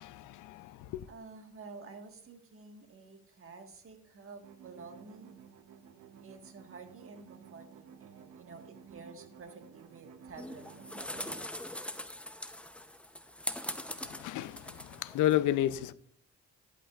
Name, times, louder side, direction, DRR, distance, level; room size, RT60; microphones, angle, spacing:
voice 1, 0.0-1.1 14.0-15.9, left 13 dB, 80° left, 0.5 m, -32 dB
voice 2, 1.1-5.3 6.2-10.9, right 4 dB, 45° right, 1.5 m, -50 dB
sound 1, 4.4-11.5, right 7 dB, 85° right, 0.8 m, -54 dB
sound 2, 10.4-15.4, left 1 dB, 5° left, 0.6 m, -42 dB
11.0 x 8.1 x 2.4 m
cardioid pair, 90°, 30 cm